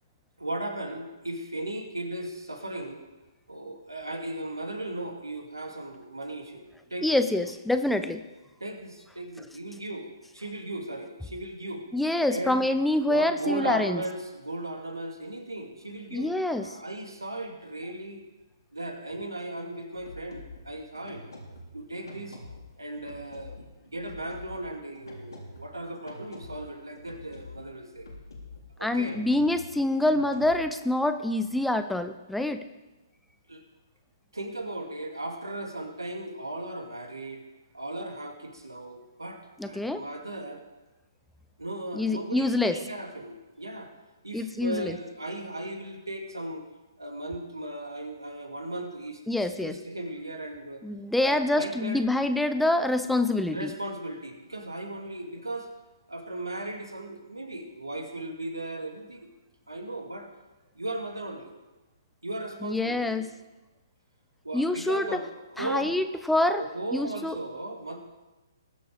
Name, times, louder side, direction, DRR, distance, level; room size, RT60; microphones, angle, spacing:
voice 1, 0.4-3.0 3.5-7.1 8.6-11.9 12.3-12.7 13.0-18.2 18.7-21.3 21.7-22.4 22.8-23.6 23.8-28.1 28.8-29.2 33.5-33.6 34.3-37.4 37.7-40.6 41.6-43.9 44.2-46.6 47.0-50.9 51.2-52.0 53.5-55.7 56.1-59.3 59.7-60.3 60.7-61.5 62.2-63.2 64.4-65.3 65.5-66.0 66.6-68.0, right 1 dB, 85° right, 4 dB, 2.3 m, -37 dB
voice 2, 7.0-8.2 11.9-14.0 16.1-16.8 28.8-32.6 39.6-40.0 41.9-42.8 44.3-45.0 49.3-49.7 50.8-53.7 62.6-63.3 64.5-65.2 65.6-66.6 66.9-67.3, left 1 dB, ahead, 9 dB, 0.6 m, -26 dB
sound 1, 19.8-30.8, left 2 dB, 75° left, 3.6 m, -47 dB
21.0 x 7.0 x 5.2 m, 1.1 s
figure-of-eight pair, 130°, 2 cm